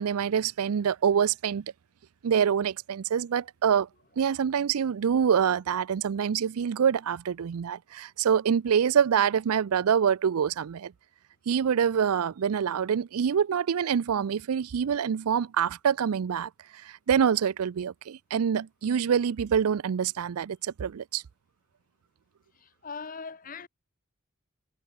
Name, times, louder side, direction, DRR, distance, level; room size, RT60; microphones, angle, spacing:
voice 1, 0.0-1.7 2.2-3.9 4.2-10.9 11.5-21.2, right 7 dB, 85° right, 0.4 m, -26 dB
voice 2, 22.8-23.7, left 5 dB, 40° left, 1.0 m, -39 dB
head